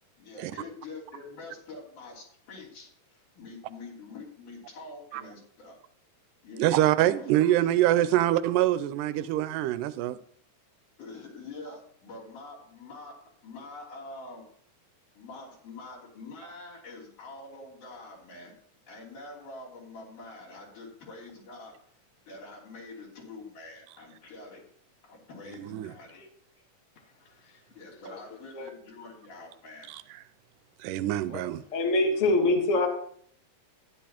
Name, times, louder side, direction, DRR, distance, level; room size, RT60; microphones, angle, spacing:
voice 1, 0.2-5.8 6.4-6.9 7.2-7.3 8.1-8.3 11.0-13.1 13.4-14.5 15.1-18.5 18.9-21.7 22.3-24.6 25.0-26.3 26.6-26.7 27.7-29.9, left 3 dB, 70° left, 4.7 m, -45 dB
voice 2, 6.6-10.2 25.5-25.9 29.9-30.2 30.8-31.6, right 13 dB, 85° right, 2.2 m, -25 dB
voice 3, 31.7-32.9, left 2 dB, 50° left, 0.8 m, -24 dB
12.5 x 10.5 x 3.0 m
omnidirectional pair, 3.7 m